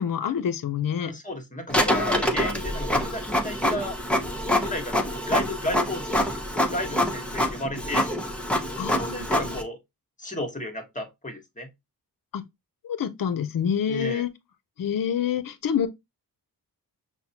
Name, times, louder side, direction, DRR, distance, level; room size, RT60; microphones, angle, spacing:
voice 1, 0.0-1.1 8.8-9.6 12.3-12.4 12.8-14.3 14.8-15.9, left 8 dB, 60° left, 0.7 m, -27 dB
voice 2, 1.0-4.0 4.6-8.1 8.9-9.8 10.2-11.7 13.9-14.2, left 1 dB, 20° left, 1.2 m, -33 dB
Printer, 1.7-9.6, left 1 dB, 5° left, 0.8 m, -26 dB
5.7 x 2.1 x 2.8 m
cardioid pair, 90°, 39 cm